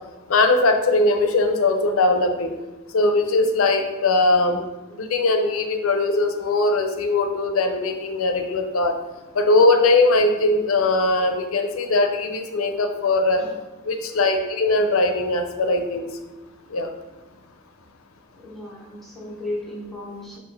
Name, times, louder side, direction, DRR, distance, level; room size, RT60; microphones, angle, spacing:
voice 1, 0.3-2.5 2.9-4.6 4.9-9.0 9.3-13.4 13.9-16.0 16.7-16.9, left 2 dB, 75° left, 6 dB, 0.5 m, -20 dB
voice 2, 18.4-20.4, left 1 dB, ahead, -6 dB, 0.8 m, -34 dB
5.7 x 2.6 x 3.3 m, 1.1 s
head